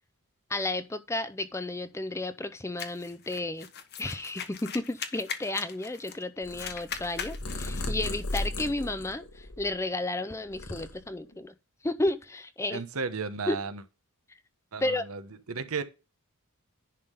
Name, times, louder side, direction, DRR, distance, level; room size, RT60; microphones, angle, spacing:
voice 1, 0.5-3.7 4.0-11.5 11.8-12.8 13.5-13.6 14.8-15.0, left 2 dB, 15° left, 0.6 m, -32 dB
sound 1, 2.8-6.2 6.5-8.5, left 7 dB, 50° left, 1.1 m, -40 dB
Purr, 6.4-10.0 10.3-11.4, left 1 dB, 75° left, 1.7 m, -36 dB
voice 2, 12.7-13.8 14.7-15.2 15.5-15.8, right 5 dB, 70° right, 1.0 m, -33 dB
10.5 x 3.7 x 5.4 m
head